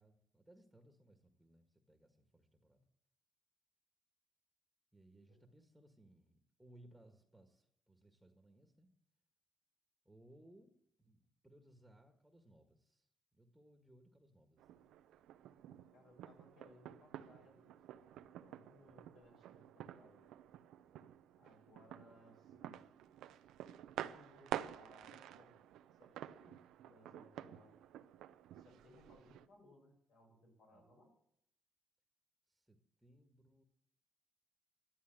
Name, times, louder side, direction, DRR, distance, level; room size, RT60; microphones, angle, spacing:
voice 1, 0.0-2.8 4.9-8.9 10.0-13.1 13.3-14.9 30.7-30.8 32.5-33.6, right 1 dB, 5° right, 4 dB, 1.6 m, -65 dB
sound 1, 14.6-29.5, right 11 dB, 85° right, 0.6 m, -50 dB
voice 2, 15.9-17.8 18.1-20.2 21.4-22.8 24.0-25.6 26.0-26.6 26.8-27.7 28.5-31.1, left 1 dB, 80° left, 1 dB, 6.6 m, -65 dB
12.5 x 11.5 x 7.8 m, 0.75 s
cardioid pair, 90°, 0 cm